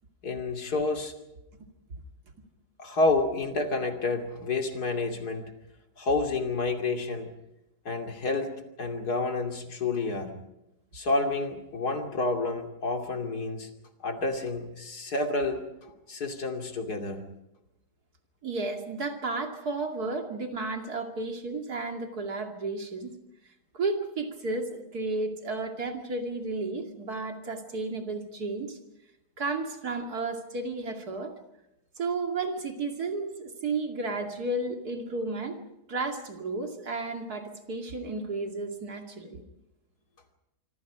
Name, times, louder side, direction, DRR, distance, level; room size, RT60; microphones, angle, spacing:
voice 1, 0.2-1.1 2.8-5.5 6.0-7.3 7.8-8.5 8.8-10.3 10.9-13.7 14.0-17.2, left 3 dB, 65° left, 4 dB, 3.2 m, -29 dB
voice 2, 18.4-23.1 23.7-28.8 29.4-31.4 32.0-35.6 35.9-39.4, right 3 dB, 65° right, 4 dB, 3.0 m, -33 dB
25.5 x 25.5 x 5.0 m, 0.89 s
omnidirectional pair, 1.8 m